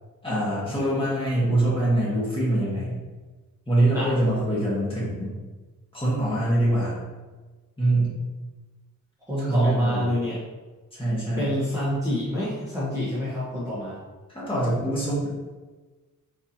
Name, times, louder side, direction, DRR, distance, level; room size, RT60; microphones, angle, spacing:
voice 1, 0.2-3.0 3.7-5.4 5.9-7.0 7.8-8.2 9.4-10.1 10.9-11.6 14.3-15.3, right 1 dB, 15° left, -8 dB, 1.4 m, -24 dB
voice 2, 9.3-10.4 11.4-14.0, left 1 dB, 10° right, -11 dB, 1.0 m, -28 dB
4.3 x 4.0 x 2.8 m, 1.3 s
wide cardioid pair, 175°, 32 cm